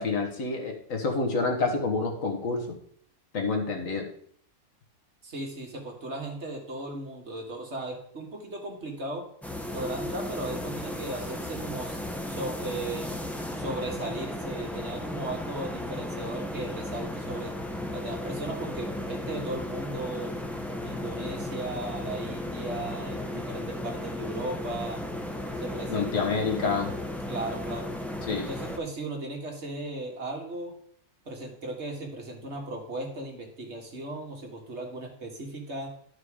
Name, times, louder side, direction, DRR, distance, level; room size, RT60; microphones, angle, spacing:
voice 1, 0.0-2.8 3.3-4.1 25.9-26.9 28.3-28.5, left 4 dB, 65° left, 2 dB, 1.8 m, -28 dB
voice 2, 5.2-9.3 9.7-12.0 12.3-13.2 13.6-17.6 17.9-20.4 20.8-25.0 25.6-26.3 27.3-27.9 28.3-30.7 31.3-35.9, right 2 dB, 50° right, 1 dB, 1.9 m, -36 dB
sound 1, 9.4-28.8, left 1 dB, ahead, 0.5 m, -35 dB
12.0 x 4.9 x 4.8 m, 0.63 s
omnidirectional pair, 1.5 m